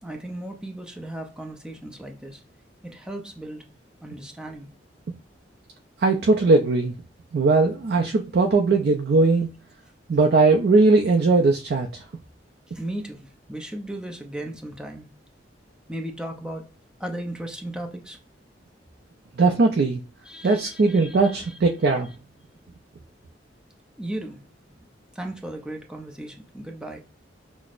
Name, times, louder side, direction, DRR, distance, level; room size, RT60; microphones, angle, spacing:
voice 1, 0.0-2.4 2.8-3.6 4.0-4.7 12.7-15.1 15.9-16.7 17.0-18.2 20.2-21.6 24.0-24.4 24.7-24.9 25.1-27.0, right 1 dB, 5° right, 0.5 m, -36 dB
voice 2, 6.0-6.9 7.3-9.5 10.1-12.0 19.4-20.0 20.4-22.1, right 3 dB, 60° right, 0.4 m, -19 dB
5.8 x 2.0 x 2.4 m
head